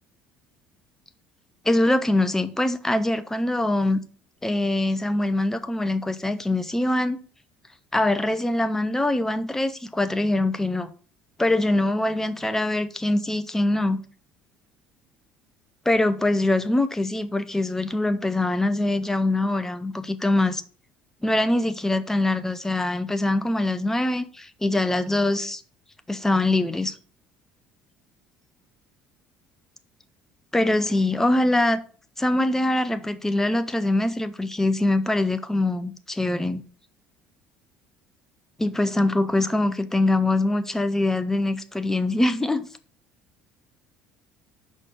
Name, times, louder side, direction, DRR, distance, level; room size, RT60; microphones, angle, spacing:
voice 1, 1.6-4.0 4.4-7.2 7.9-10.9 11.4-14.0 15.9-20.6 21.2-25.6 26.1-26.9 30.5-31.8 32.2-36.6 38.6-42.7, left 2 dB, 10° left, 0.8 m, -23 dB
6.4 x 5.0 x 5.4 m
figure-of-eight pair, 55°, 4 cm